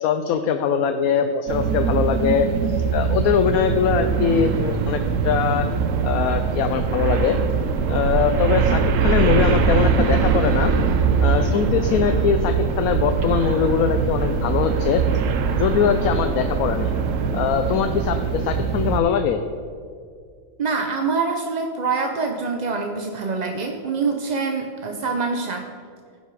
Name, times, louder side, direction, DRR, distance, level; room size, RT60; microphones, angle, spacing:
voice 1, 0.0-5.7 6.0-7.4 7.9-10.7 11.2-15.0 15.6-16.9 17.3-19.4, left 7 dB, 80° left, 7 dB, 1.0 m, -22 dB
sound 1, 1.5-19.0, right 5 dB, 70° right, 1.0 m, -22 dB
voice 2, 20.6-25.7, right 4 dB, 50° right, 3 dB, 0.5 m, -25 dB
15.5 x 5.5 x 4.7 m, 2.2 s
omnidirectional pair, 1.5 m